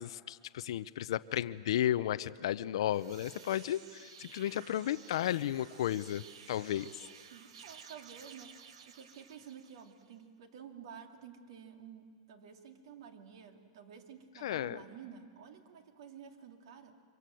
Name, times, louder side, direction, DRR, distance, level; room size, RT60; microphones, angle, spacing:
voice 1, 0.0-6.9 14.4-14.8, left 12 dB, 60° left, 14 dB, 0.6 m, -33 dB
sound 1, 2.7-10.1, right 7 dB, 75° right, 1.7 m, -54 dB
voice 2, 7.0-17.0, right 7 dB, 60° right, 5 dB, 2.6 m, -52 dB
26.5 x 24.5 x 7.8 m, 2.1 s
supercardioid pair, 170°, 3 cm